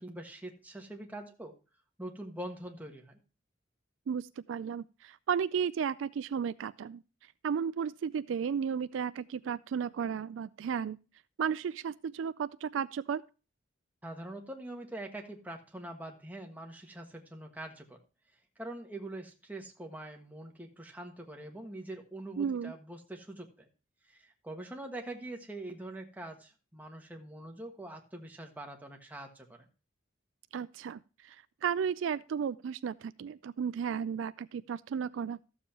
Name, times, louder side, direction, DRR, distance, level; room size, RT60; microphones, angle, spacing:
voice 1, 0.0-1.5 2.0-3.2 14.0-18.0 18.6-23.7 24.1-29.7, right 1 dB, 10° right, 1.4 m, -44 dB
voice 2, 4.1-7.0 7.4-11.0 11.4-13.2 22.4-22.7 30.5-31.4 31.6-35.4, right 7 dB, 75° right, 0.3 m, -34 dB
13.5 x 7.2 x 2.8 m
head